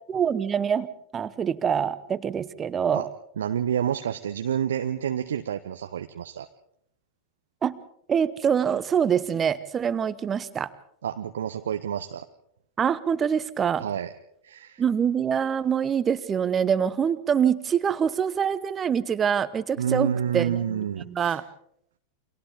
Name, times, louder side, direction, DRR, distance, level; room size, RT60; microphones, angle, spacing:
voice 1, 0.1-0.9 1.1-3.1 7.6-7.8 8.1-10.7 12.8-13.8 14.8-20.8 21.0-21.4, right 7 dB, 20° right, 15 dB, 1.0 m, -25 dB
voice 2, 3.4-6.5 11.0-12.2 13.8-14.1 14.4-14.8 19.8-21.4, right 9 dB, 65° right, 7 dB, 0.8 m, -28 dB
29.5 x 25.0 x 3.7 m, 0.71 s
figure-of-eight pair, 90°, 0 cm